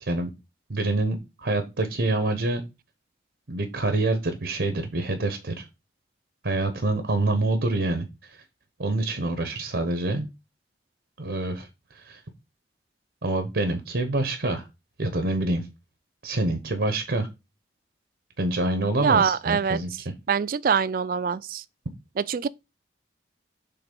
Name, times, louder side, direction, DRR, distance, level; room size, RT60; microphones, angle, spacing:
voice 1, 0.7-2.6 3.5-5.6 6.4-8.0 8.8-10.3 11.2-11.7 11.9-12.2 13.2-14.7 15.0-15.7 16.2-17.3 18.4-19.9, right 2 dB, 80° right, 0.9 m, -26 dB
voice 2, 19.0-19.8 20.3-21.6 22.2-22.5, right 6 dB, 55° right, 0.3 m, -24 dB
5.8 x 3.7 x 5.3 m
head